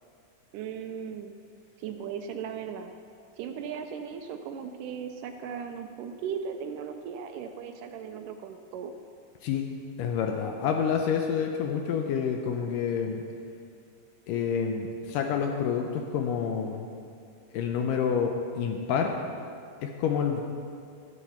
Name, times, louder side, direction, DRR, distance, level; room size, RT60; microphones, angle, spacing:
voice 1, 0.5-1.3 1.8-2.9 3.4-8.9, right 7 dB, 80° right, 6 dB, 2.1 m, -37 dB
voice 2, 10.0-13.2 14.3-16.9 17.5-19.2 19.8-20.4, left 7 dB, 80° left, 3 dB, 2.2 m, -28 dB
16.5 x 8.1 x 4.3 m, 2.3 s
omnidirectional pair, 3.9 m